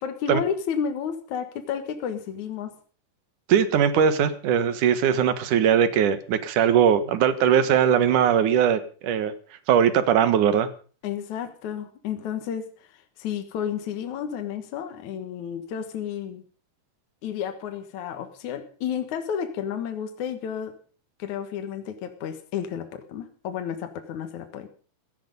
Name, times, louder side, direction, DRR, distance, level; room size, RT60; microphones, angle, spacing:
voice 1, 0.0-2.7 11.0-16.4 17.2-20.8 21.2-24.7, left 8 dB, 65° left, 7 dB, 2.7 m, -31 dB
voice 2, 3.5-9.3 9.7-10.7, right 8 dB, 70° right, 13 dB, 2.8 m, -20 dB
16.5 x 14.5 x 5.3 m, 0.40 s
omnidirectional pair, 3.9 m